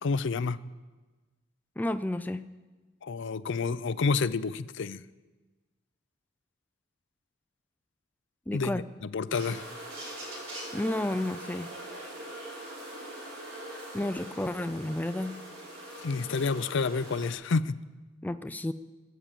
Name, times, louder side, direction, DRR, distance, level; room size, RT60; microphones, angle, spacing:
voice 1, 0.0-0.6 3.0-5.0 8.5-9.7 16.0-17.8, left 4 dB, 65° left, 15 dB, 0.5 m, -29 dB
voice 2, 1.8-2.5 8.5-8.8 10.7-11.7 13.9-15.4 18.2-18.7, left 1 dB, 10° left, 10 dB, 0.4 m, -31 dB
sound 1, 9.3-17.3, right 1 dB, 90° right, 4.6 m, -42 dB
21.0 x 8.4 x 7.5 m, 1.3 s
head